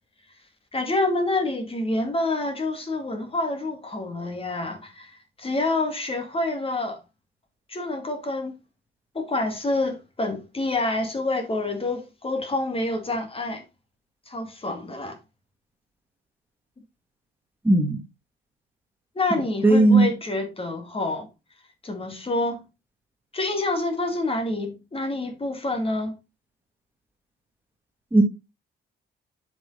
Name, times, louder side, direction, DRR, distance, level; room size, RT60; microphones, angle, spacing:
voice 1, 0.7-7.0 7.7-8.6 9.1-13.6 14.3-15.2 19.1-21.3 21.8-22.6 23.3-26.2, left 2 dB, 30° left, 2.3 m, -27 dB
voice 2, 17.6-18.0 19.6-20.1 28.1-28.2, right 2 dB, 10° right, 1.4 m, -16 dB
7.6 x 5.3 x 4.1 m
cardioid pair, 90°, 20 cm